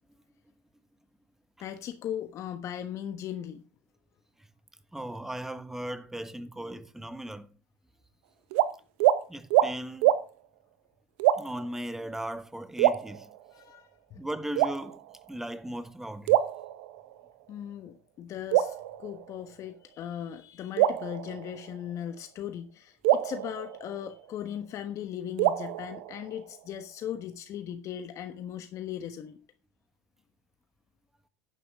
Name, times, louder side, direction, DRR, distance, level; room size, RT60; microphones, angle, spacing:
voice 1, 1.6-3.6 13.5-14.2 17.5-29.4, left 10 dB, 50° left, 1.2 m, -38 dB
voice 2, 4.9-7.5 9.3-10.1 11.4-13.3 14.2-16.4, right 1 dB, 5° right, 1.4 m, -37 dB
sound 1, 8.5-8.7 9.0-9.2 9.5-9.7 10.0-10.2 11.2-11.7 12.8-13.6 14.6-15.3 16.3-17.3 18.5-19.6 20.8-22.0 23.0-24.5 25.4-26.6, right 13 dB, 75° right, 1.0 m, -26 dB
11.0 x 10.0 x 3.6 m
hypercardioid pair, 85°, 7 cm